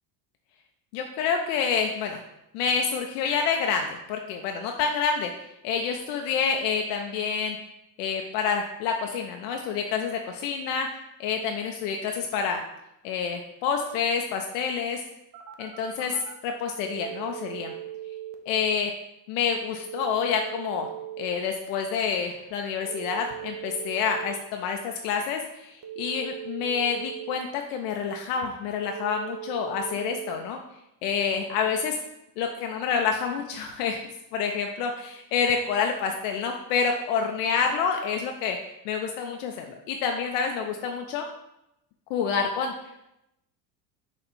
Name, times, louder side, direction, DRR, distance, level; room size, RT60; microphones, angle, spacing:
voice 1, 0.9-2.2 2.5-5.3 5.6-7.6 8.0-10.9 11.2-12.6 13.0-15.0 15.6-17.7 18.5-18.9 19.3-20.9 21.2-30.6 31.0-32.0 32.4-34.0 34.3-38.6 38.8-41.2 42.1-42.7, left 6 dB, 65° left, 3 dB, 0.6 m, -28 dB
Telephone, 15.3-16.3 16.8-18.3 19.8-21.3 22.8-24.3 25.8-27.3 28.8-30.3, right 13 dB, 40° right, 0.6 m, -38 dB
4.2 x 2.5 x 4.2 m, 0.87 s
hypercardioid pair, 80°, 50 cm